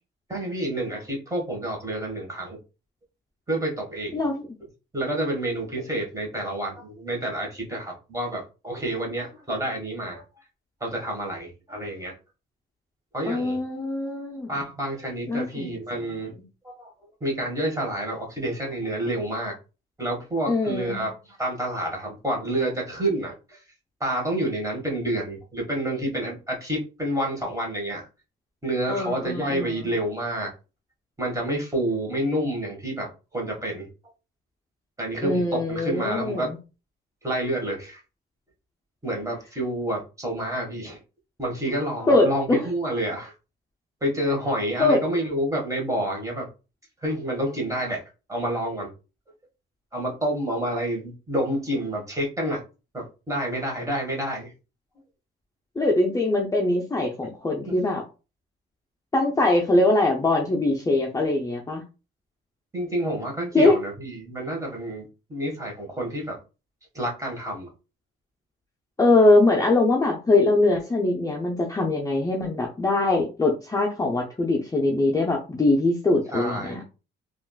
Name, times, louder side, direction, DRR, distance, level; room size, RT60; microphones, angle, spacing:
voice 1, 0.3-2.6 3.5-4.2 4.9-10.2 10.8-12.1 13.1-13.6 14.5-16.3 16.6-19.5 20.0-23.6 24.0-28.1 28.6-30.5 31.2-33.9 35.0-36.5 37.2-38.0 39.0-41.0 41.4-43.3 44.0-46.5 47.0-48.0 48.3-48.9 49.9-52.6 52.9-54.5 57.6-57.7 62.7-66.4 66.9-67.7 76.3-76.8, right 1 dB, 15° right, 0 dB, 1.4 m, -29 dB
voice 2, 13.3-14.5 15.3-15.7 20.5-21.0 28.9-29.7 35.2-36.6 42.1-42.6 44.8-45.0 55.8-58.0 59.1-61.8 63.5-63.8 69.0-76.8, left 2 dB, 15° left, -1 dB, 0.6 m, -22 dB
3.4 x 2.5 x 2.3 m, 0.31 s
cardioid pair, 90°, 20 cm